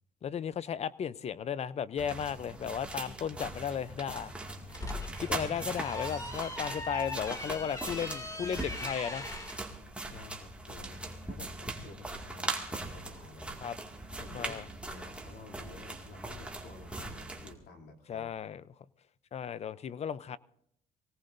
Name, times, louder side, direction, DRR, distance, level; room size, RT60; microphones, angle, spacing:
voice 1, 0.2-4.3 5.2-9.3 13.6-13.8 14.3-14.6 18.1-18.6 19.3-20.4, left 8 dB, 40° left, 0.6 m, -35 dB
sound 1, 2.0-17.5, right 2 dB, 5° right, 2.1 m, -40 dB
sound 2, 4.5-9.6, left 2 dB, 20° left, 2.4 m, -40 dB
voice 2, 10.0-13.7 14.2-14.6 14.9-18.3, left 3 dB, 70° left, 3.1 m, -51 dB
24.0 x 17.5 x 2.6 m
cardioid pair, 110°, 17 cm